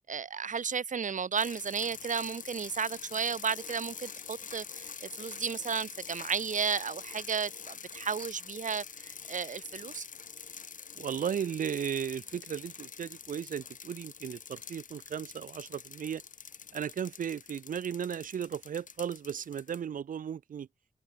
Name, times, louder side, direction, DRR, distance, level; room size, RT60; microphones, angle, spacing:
voice 1, 0.1-10.1, right 6 dB, 70° right, 1.0 m, -33 dB
sound 1, 1.4-19.8, left 6 dB, 75° left, 1.1 m, -46 dB
voice 2, 11.0-16.2 16.7-20.7, right 8 dB, 85° right, 0.6 m, -35 dB
cardioid pair, 50°, 14 cm